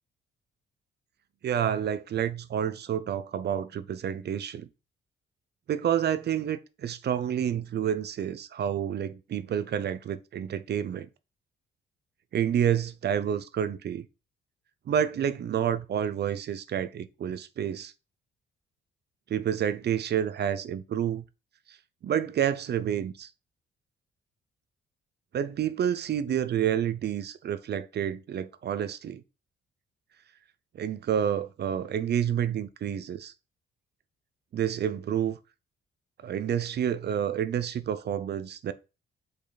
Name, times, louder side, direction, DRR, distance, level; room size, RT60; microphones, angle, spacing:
voice 1, 1.4-4.7 5.7-11.1 12.3-14.0 14.9-17.9 19.3-21.2 21.7-21.8 22.0-23.3 25.3-29.2 30.7-33.3 34.5-35.4 36.2-38.7, right 9 dB, 55° right, 0.7 m, -29 dB
6.5 x 5.2 x 4.0 m
cardioid pair, 90°, 20 cm